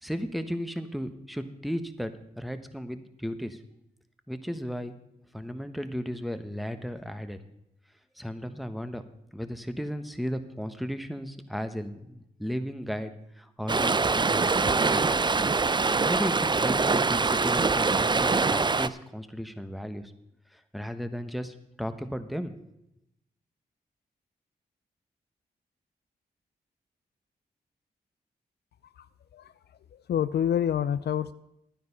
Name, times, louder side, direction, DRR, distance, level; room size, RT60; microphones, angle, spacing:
voice 1, 0.0-3.6 4.3-5.0 5.3-7.4 8.2-9.0 9.3-15.0 16.0-20.1 20.5-22.6, equal, ahead, 9 dB, 1.3 m, -35 dB
Stream, 13.7-18.9, right 4 dB, 25° right, 0.5 m, -24 dB
voice 2, 29.9-31.3, left 9 dB, 65° left, 15 dB, 0.4 m, -27 dB
11.0 x 9.6 x 5.5 m, 0.82 s
supercardioid pair, 40°, 18 cm